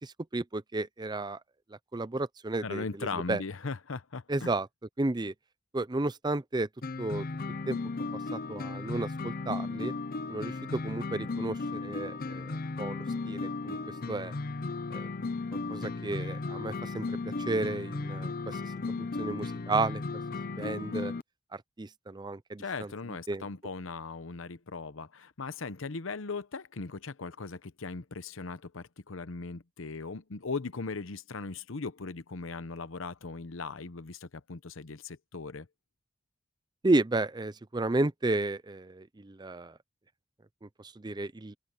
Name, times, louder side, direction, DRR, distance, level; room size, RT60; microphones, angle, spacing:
voice 1, 0.0-1.4 1.9-3.4 4.3-4.7 5.0-5.3 5.7-6.7 7.0-7.3 7.7-7.8 8.3-9.9 10.3-13.8 14.1-14.3 14.9-15.1 15.7-20.0 20.6-21.1 21.5-22.9 23.3-23.4 36.8-39.8 40.6-41.5, right 2 dB, 20° right, 0.5 m, -33 dB
voice 2, 2.6-4.5 22.6-35.7, left 4 dB, 70° left, 0.9 m, -38 dB
sound 1, 6.8-21.2, left 3 dB, 45° left, 0.6 m, -35 dB
open air
head